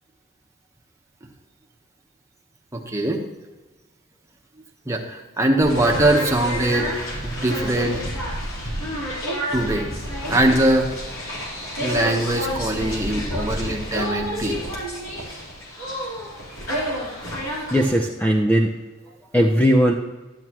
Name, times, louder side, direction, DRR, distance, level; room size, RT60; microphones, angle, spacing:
voice 1, 2.7-3.2 4.9-6.9 7.2-8.0 9.5-9.9 10.3-10.9 11.8-14.6, right 1 dB, 15° right, 1 dB, 1.2 m, -21 dB
sound 1, 5.6-17.9, equal, 85° left, 3.9 m, -29 dB
voice 2, 17.7-18.7 19.3-19.9, equal, 10° left, 1 dB, 0.6 m, -18 dB
12.5 x 10.5 x 3.0 m, 1.2 s
head